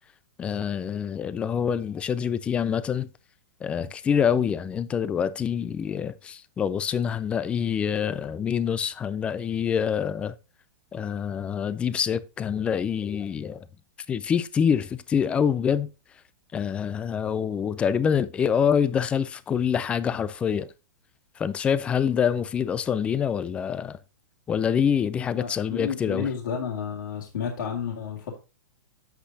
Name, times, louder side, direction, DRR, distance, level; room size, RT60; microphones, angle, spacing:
voice 1, 0.4-3.1 3.6-10.3 10.9-13.7 14.1-15.9 16.5-20.7 21.4-24.0 24.5-26.3, left 7 dB, 10° left, 0.3 m, -26 dB
voice 2, 25.3-28.4, left 7 dB, 70° left, 2.2 m, -31 dB
8.3 x 8.0 x 2.7 m
hypercardioid pair, 160°, 11 cm